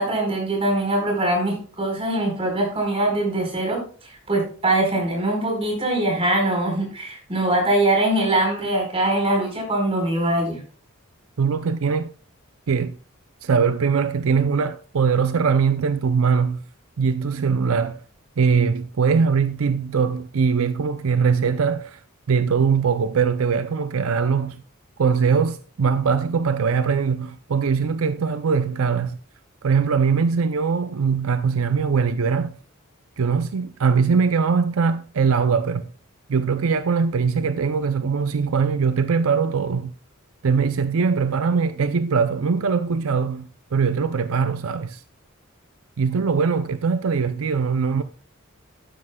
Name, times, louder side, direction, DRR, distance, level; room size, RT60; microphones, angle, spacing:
voice 1, 0.0-10.6, right 1 dB, 25° right, 4.5 m, -22 dB
voice 2, 11.4-12.1 12.7-13.0 13.4-16.6 17.0-18.0 18.4-22.0 22.3-24.6 25.0-29.2 29.6-32.6 33.2-35.9 36.3-39.9 40.4-45.0 46.0-48.0, right 5 dB, 75° right, 0.5 m, -21 dB
12.5 x 9.7 x 2.3 m
head